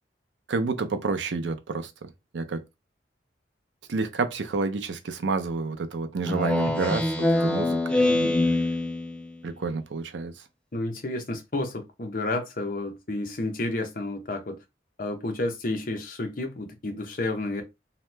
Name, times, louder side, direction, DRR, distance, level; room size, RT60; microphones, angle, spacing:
voice 1, 0.5-2.6 3.9-8.4 9.4-10.3, right 4 dB, 90° right, 0.5 m, -29 dB
Speech synthesizer, 6.3-9.3, left 2 dB, 5° left, 0.4 m, -24 dB
voice 2, 10.7-14.6 15.0-17.6, left 2 dB, 50° left, 0.7 m, -31 dB
2.8 x 2.1 x 3.3 m
head